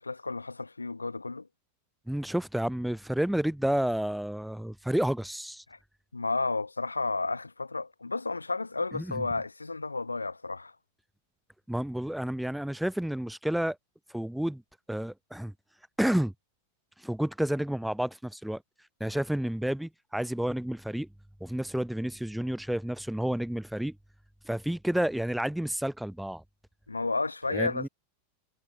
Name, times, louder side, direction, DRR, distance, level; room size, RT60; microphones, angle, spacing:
voice 1, 0.0-1.5 5.7-5.8 6.1-10.7 26.9-27.9, left 3 dB, 80° left, 2.4 m, -32 dB
voice 2, 2.1-5.6 8.9-9.2 11.7-13.8 14.1-14.6 14.9-15.5 16.0-16.3 17.0-18.6 19.0-21.1 21.4-24.0 24.4-26.4 27.5-27.9, right 1 dB, ahead, 2.3 m, -30 dB
figure-of-eight pair, 90°, 0 cm